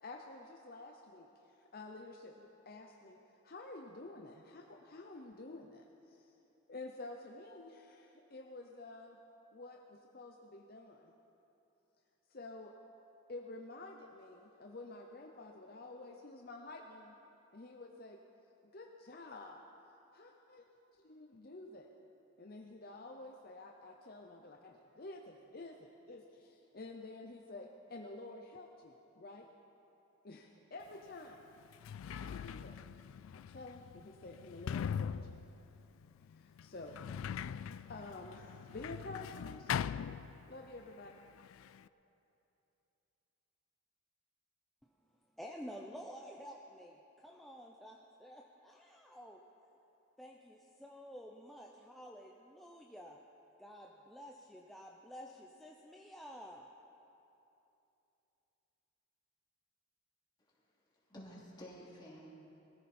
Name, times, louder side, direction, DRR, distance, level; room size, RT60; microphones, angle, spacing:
voice 1, 0.0-3.2 3.4-6.3 6.7-9.2 9.5-11.1 12.3-12.7 13.3-17.2 17.5-18.2 18.7-19.6 20.1-21.9 22.4-29.5 30.2-31.4 31.8-32.8 33.3-35.1 36.2-37.0 37.6-39.9 40.5-41.1, left 2 dB, 45° left, 2 dB, 0.7 m, -50 dB
Sliding door, 30.9-31.0 31.6-40.8 41.1-41.9, left 8 dB, 80° left, 0.3 m, -42 dB
voice 2, 45.4-49.4 50.2-53.2 53.6-56.7, equal, ahead, -1 dB, 0.6 m, -51 dB
voice 3, 60.5-62.3, equal, 20° left, -5 dB, 2.7 m, -53 dB
21.0 x 14.5 x 4.3 m, 2.9 s
head